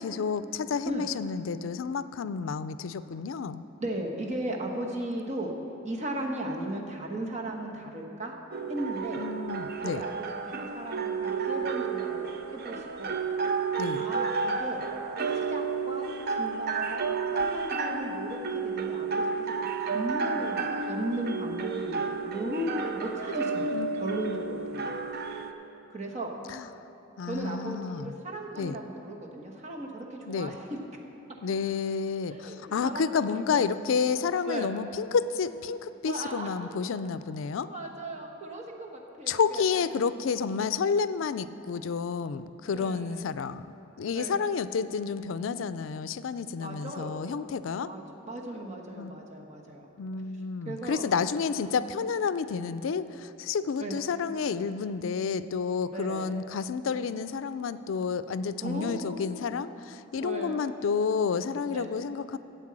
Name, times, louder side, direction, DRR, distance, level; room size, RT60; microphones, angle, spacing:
voice 1, 0.0-3.7 9.2-10.0 13.8-14.1 23.7-23.9 26.5-26.7 27.2-28.1 28.6-28.8 30.3-30.6 31.4-37.7 39.3-43.7 44.0-47.9 49.0-49.1 50.0-62.4, left 5 dB, 75° left, 13 dB, 0.4 m, -30 dB
voice 2, 3.8-5.5 5.8-8.3 8.7-9.2 9.8-13.2 14.0-14.8 15.3-24.9 25.9-26.3 27.2-30.8 32.3-33.6 34.5-34.7 36.0-37.0 37.7-39.8 42.7-43.4 44.1-44.4 46.6-47.4 47.8-49.9 50.7-51.0 53.8-54.0 55.9-56.4 58.6-59.5 60.2-60.7 61.7-61.9, right 1 dB, 35° right, 0 dB, 1.3 m, -36 dB
sound 1, 8.5-25.5, right 4 dB, 50° right, 0.6 m, -31 dB
9.8 x 8.1 x 7.5 m, 2.9 s
head